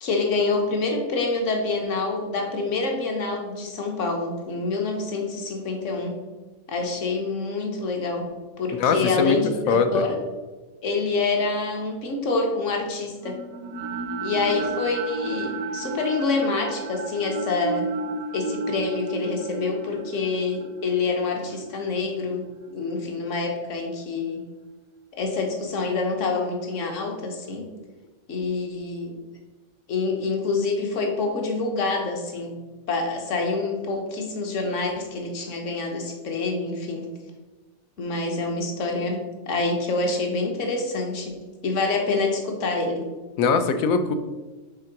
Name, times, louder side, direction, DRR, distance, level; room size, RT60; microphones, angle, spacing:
voice 1, 0.0-6.1 6.7-8.3 8.6-10.2 10.8-13.4 14.2-18.0 18.3-22.4 22.7-24.4 25.1-27.7 28.3-29.1 29.9-32.5 32.9-37.1 38.0-41.3 41.6-43.0, left 3 dB, 65° left, 2 dB, 1.4 m, -26 dB
voice 2, 8.7-9.4 9.7-10.0 43.4-44.1, left 5 dB, 85° left, 8 dB, 1.1 m, -21 dB
sound 1, 13.2-23.4, right 3 dB, 80° right, 1.0 m, -33 dB
5.6 x 3.8 x 5.8 m, 1.2 s
omnidirectional pair, 1.4 m